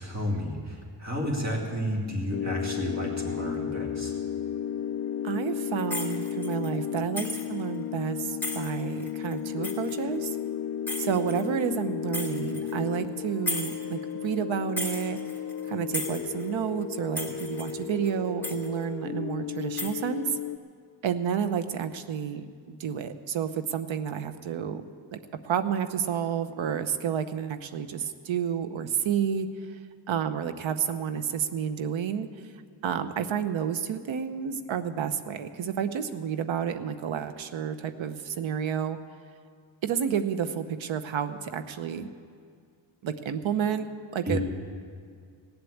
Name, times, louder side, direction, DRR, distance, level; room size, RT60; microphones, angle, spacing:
voice 1, 0.0-4.1 44.2-44.4, equal, 35° right, -1 dB, 3.0 m, -31 dB
sound 1, 2.3-20.6, left 9 dB, 35° left, 0.4 m, -34 dB
voice 2, 5.2-10.4 11.0-15.2 15.7-20.4 21.0-24.8 25.1-29.5 30.1-32.3 32.8-39.0 39.8-42.1 43.0-44.4, right 8 dB, 80° right, 10 dB, 0.9 m, -30 dB
sound 2, 5.9-6.8 7.2-7.5 8.4-10.3 10.9-11.5 12.1-12.8 13.5-13.9 14.3-14.4 14.8-15.7 15.9-16.5 16.8-16.9 17.2-17.8 18.1-18.2 18.4-18.7 19.6-20.0, left 1 dB, 5° left, 2.3 m, -35 dB
17.0 x 7.9 x 8.5 m, 2.1 s
cardioid pair, 95°, 46 cm